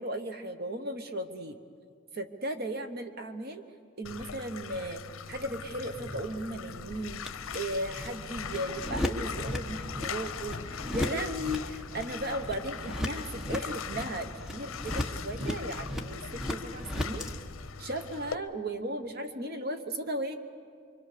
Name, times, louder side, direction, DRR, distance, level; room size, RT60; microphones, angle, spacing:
voice 1, 0.0-1.6 2.1-3.6 4.0-5.0 5.3-7.2 7.5-17.3 17.8-20.3, right 1 dB, 50° right, 8 dB, 1.1 m, -36 dB
Bathtub (filling or washing), 4.0-18.4, left 7 dB, 80° left, 0.7 m, -41 dB
sound 1, 5.3-17.3, left 1 dB, ahead, 1.2 m, -37 dB
25.5 x 24.0 x 6.8 m, 2.2 s
head